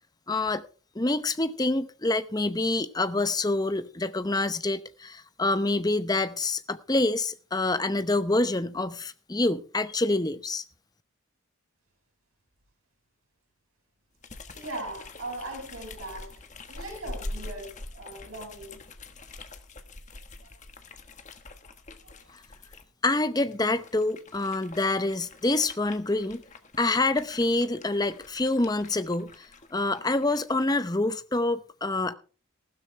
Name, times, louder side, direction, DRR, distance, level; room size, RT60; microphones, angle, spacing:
voice 1, 0.3-0.6 0.9-10.6 23.0-26.4 26.8-32.2, left 2 dB, 20° left, 0.7 m, -26 dB
sound 1, 14.2-22.8 23.4-30.7, left 2 dB, 35° left, 1.3 m, -45 dB
voice 2, 14.5-16.4 16.7-18.8 22.0-22.2, right 2 dB, 85° right, 6.3 m, -39 dB
15.5 x 12.5 x 3.3 m
head